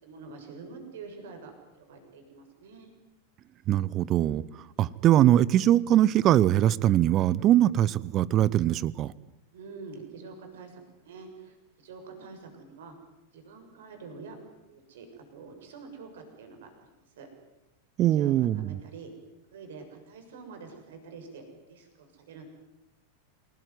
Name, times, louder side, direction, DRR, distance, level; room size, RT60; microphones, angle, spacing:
voice 1, 0.0-2.9 9.5-12.9 13.3-14.4 14.7-16.7 17.2-17.3 18.1-19.1 19.5-21.4 21.7-22.4, right 4 dB, 60° right, 4 dB, 6.8 m, -46 dB
voice 2, 3.7-4.4 4.8-9.1 18.0-18.8, right 12 dB, 35° right, 22 dB, 0.9 m, -22 dB
28.0 x 20.0 x 9.5 m, 0.97 s
figure-of-eight pair, 90°, 0 cm